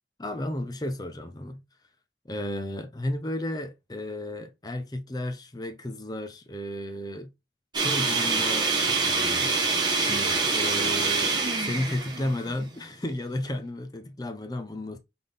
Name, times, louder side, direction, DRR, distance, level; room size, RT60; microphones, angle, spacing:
voice 1, 0.2-1.6 2.2-7.3 7.8-9.5 9.8-15.0, left 1 dB, 20° left, 0.6 m, -33 dB
licuadora licuado cooking blender smoothie liquate, 7.7-12.9, right 4 dB, 25° right, 1.0 m, -25 dB
4.0 x 3.7 x 3.4 m
head